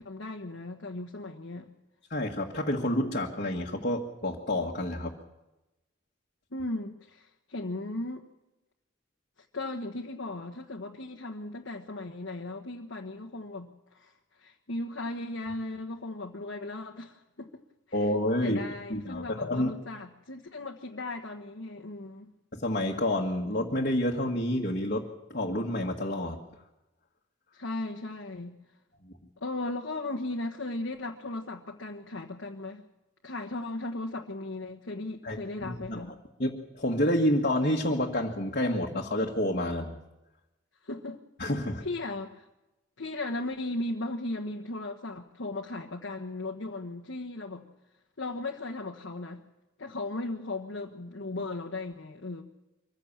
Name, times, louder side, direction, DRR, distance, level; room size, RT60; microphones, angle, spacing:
voice 1, 0.0-1.7 6.5-8.3 9.5-17.6 17.9-18.1 18.4-22.3 27.5-28.6 29.4-32.8 33.2-36.1 40.8-41.2 41.8-42.5 43.0-47.6 48.2-49.4 49.8-52.4, left 2 dB, 75° left, 1 dB, 1.4 m, -37 dB
voice 2, 2.1-5.2 17.9-18.6 18.9-19.7 22.5-26.4 35.2-36.0 36.4-40.0 41.4-41.8, left 1 dB, 45° left, -2 dB, 1.8 m, -29 dB
24.5 x 15.5 x 7.3 m, 0.99 s
head